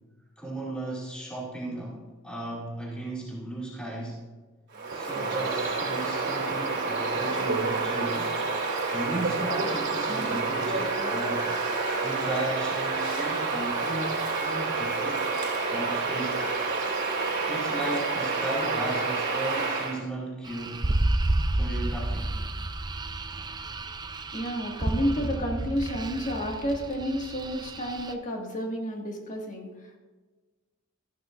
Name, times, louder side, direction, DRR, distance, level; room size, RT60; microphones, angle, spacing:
voice 1, 0.4-4.2 4.9-8.4 8.9-11.5 12.0-15.4 15.7-16.5 17.5-20.8 21.5-22.4, right 1 dB, 5° left, -6 dB, 2.4 m, -35 dB
Bird vocalization bird call bird song, 4.7-20.0, right 3 dB, 60° right, 2.4 m, -28 dB
sound 1, 20.5-28.1, right 1 dB, 20° right, 0.5 m, -30 dB
voice 2, 24.3-30.0, equal, 40° left, 1 dB, 1.9 m, -31 dB
14.0 x 11.5 x 2.5 m, 1.3 s
head